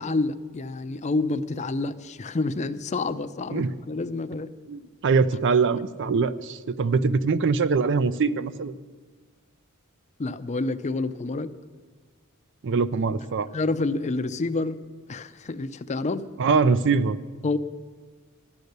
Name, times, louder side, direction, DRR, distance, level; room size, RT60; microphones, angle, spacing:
voice 1, 0.0-4.5 10.2-11.5 13.5-14.8 15.1-16.3 17.4-17.6, left 3 dB, 30° left, 10 dB, 0.5 m, -28 dB
voice 2, 4.7-8.8 12.6-13.5 16.4-17.2, right 4 dB, 55° right, 15 dB, 0.5 m, -23 dB
11.5 x 10.5 x 6.7 m, 1.4 s
head